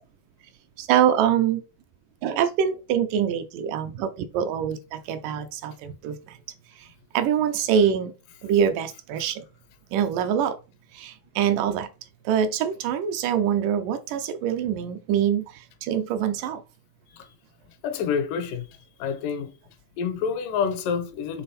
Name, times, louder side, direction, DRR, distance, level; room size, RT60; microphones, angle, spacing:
voice 1, 0.8-1.6 2.2-6.4 6.8-6.9 7.1-8.1 8.4-9.5 9.9-10.6 10.9-11.9 12.3-16.6, right 8 dB, 80° right, 2.2 m, -24 dB
voice 2, 17.8-18.7 19.0-19.5 20.0-21.4, left 6 dB, 80° left, 2.4 m, -27 dB
7.6 x 3.5 x 4.2 m
omnidirectional pair, 3.9 m